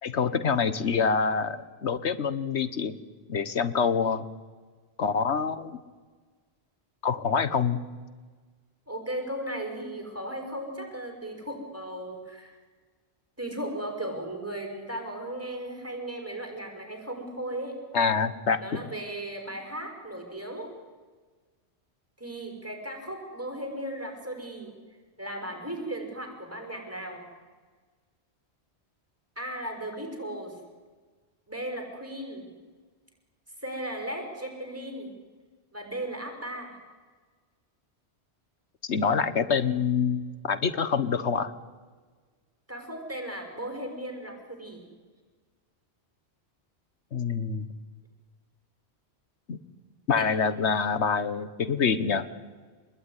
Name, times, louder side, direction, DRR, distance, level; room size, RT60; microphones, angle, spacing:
voice 1, 0.0-2.9 3.3-4.2 5.0-5.8 7.0-7.8 17.9-18.9 38.9-41.5 47.1-47.7 49.5-49.6 50.1-52.3, left 6 dB, 85° left, 12 dB, 1.5 m, -26 dB
voice 2, 8.9-12.6 13.4-17.8 18.6-20.7 22.2-24.7 25.2-27.2 29.4-30.6 31.5-32.5 33.6-35.1 35.7-36.8 42.7-44.8 50.2-50.3, right 1 dB, 15° right, 3 dB, 6.0 m, -36 dB
26.5 x 21.0 x 9.8 m, 1.4 s
omnidirectional pair, 1.1 m